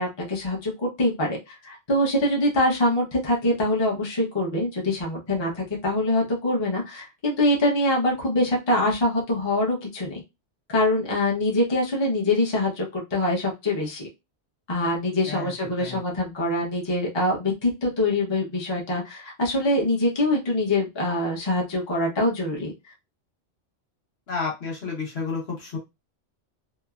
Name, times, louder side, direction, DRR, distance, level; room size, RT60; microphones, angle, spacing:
voice 1, 0.0-10.2 10.7-14.1 14.7-22.7, left 1 dB, 25° left, -2 dB, 0.7 m, -24 dB
voice 2, 24.3-25.8, left 4 dB, 60° left, -1 dB, 1.2 m, -31 dB
3.0 x 2.1 x 2.3 m, 0.23 s
omnidirectional pair, 1.2 m